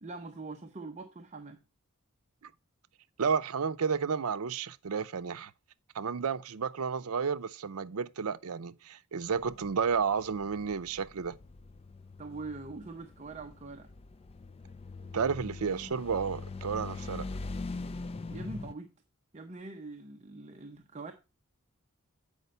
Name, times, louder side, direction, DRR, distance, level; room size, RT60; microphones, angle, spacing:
voice 1, 0.0-1.6 12.2-13.9 18.3-18.9 19.3-21.1, right 3 dB, 30° right, 0.7 m, -43 dB
voice 2, 3.2-5.5 5.9-11.4 15.1-17.3, right 6 dB, 80° right, 0.6 m, -32 dB
sound 1, 9.2-18.7, left 3 dB, 25° left, 0.3 m, -43 dB
8.0 x 5.1 x 5.4 m
head